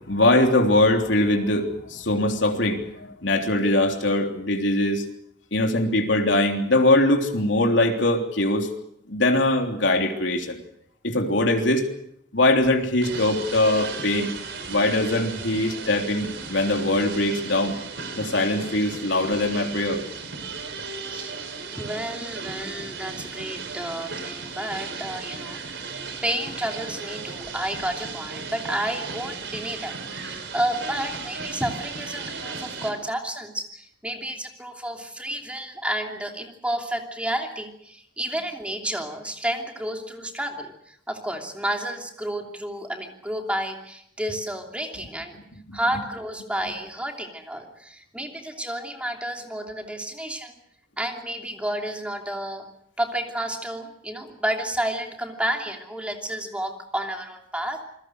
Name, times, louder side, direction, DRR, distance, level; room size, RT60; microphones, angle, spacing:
voice 1, 0.1-5.0 5.5-8.7 9.1-10.6 11.0-11.9 12.3-14.3 14.7-17.8 18.2-20.0 45.7-45.8, left 1 dB, 85° left, 3 dB, 3.5 m, -22 dB
sound 1, 13.0-32.9, right 4 dB, 70° right, 4.5 m, -36 dB
voice 2, 21.1-21.4 21.7-45.4 45.7-50.5 51.0-52.7 53.0-57.8, right 1 dB, 5° right, 2 dB, 3.0 m, -31 dB
28.0 x 21.0 x 6.5 m, 0.72 s
head